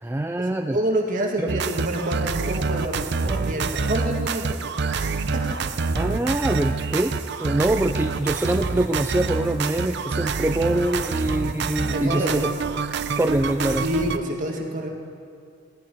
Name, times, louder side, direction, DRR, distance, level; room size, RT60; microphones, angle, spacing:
voice 1, 0.0-0.8 1.4-1.5 6.0-12.5 13.2-13.8, right 1 dB, 10° right, 5 dB, 0.3 m, -24 dB
voice 2, 0.7-5.4 11.9-12.4 13.8-14.9, right 1 dB, 40° right, 0 dB, 1.7 m, -27 dB
sound 1, 1.5-14.2, right 4 dB, 60° right, 0.6 m, -27 dB
17.5 x 13.5 x 4.5 m, 2.3 s
head